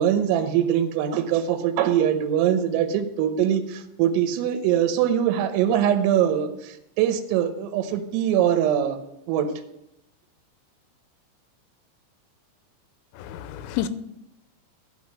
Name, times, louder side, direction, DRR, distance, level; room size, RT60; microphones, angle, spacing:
voice 1, 0.0-9.0 9.3-9.5, right 10 dB, 85° right, 3.6 m, -22 dB
voice 2, 13.2-13.9, left 11 dB, 90° left, 3.3 m, -30 dB
12.5 x 5.6 x 7.4 m
omnidirectional pair, 5.8 m